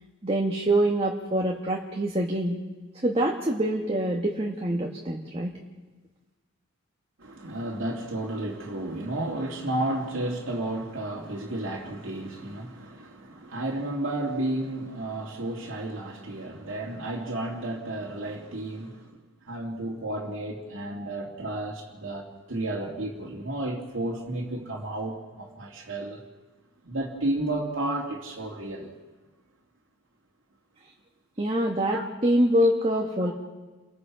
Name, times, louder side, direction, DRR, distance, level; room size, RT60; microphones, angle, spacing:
voice 1, 0.2-2.6 3.0-5.5 31.4-33.3, right 1 dB, 25° right, 0 dB, 1.6 m, -25 dB
voice 2, 7.2-19.2 19.5-26.2 26.8-28.9 31.9-32.0, right 1 dB, 65° right, -3 dB, 2.5 m, -32 dB
29.5 x 22.0 x 4.9 m, 1.3 s
head